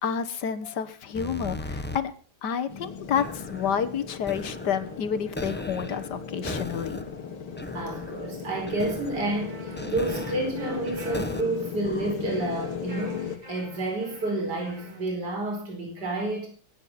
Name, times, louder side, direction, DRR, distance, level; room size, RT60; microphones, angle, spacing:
voice 1, 0.0-2.1 2.4-7.0, left 7 dB, 55° left, 11 dB, 1.6 m, -29 dB
sound 1, 1.1-2.0 2.8-11.4 11.8-12.8, left 1 dB, 15° left, 0.3 m, -38 dB
sound 2, 2.7-13.4, left 7 dB, 70° left, 2.3 m, -38 dB
voice 2, 7.7-16.5, right 2 dB, 50° right, 1 dB, 5.1 m, -30 dB
sound 3, 9.2-15.1, equal, 20° right, 2.6 m, -44 dB
22.0 x 9.0 x 5.7 m, 0.40 s
omnidirectional pair, 2.3 m